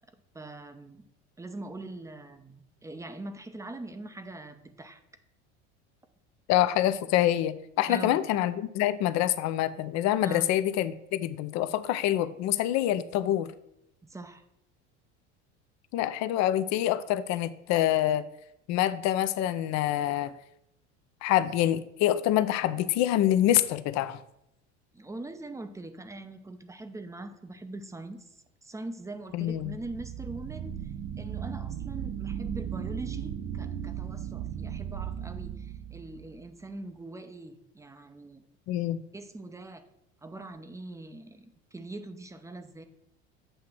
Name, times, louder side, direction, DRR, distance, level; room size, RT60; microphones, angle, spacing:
voice 1, 0.3-1.1 1.4-5.0 7.9-8.2 10.2-10.5 14.0-14.4 24.9-38.4 39.1-39.8 40.2-42.8, right 2 dB, 10° right, 9 dB, 0.5 m, -42 dB
voice 2, 6.5-13.5 15.9-18.2 18.7-20.3 21.2-24.2 29.3-29.7 38.7-39.0, left 12 dB, 50° left, 14 dB, 0.5 m, -26 dB
sound 1, 29.4-36.4, right 9 dB, 50° right, 0.8 m, -36 dB
7.8 x 2.8 x 6.0 m, 0.80 s
hypercardioid pair, 85°, 34 cm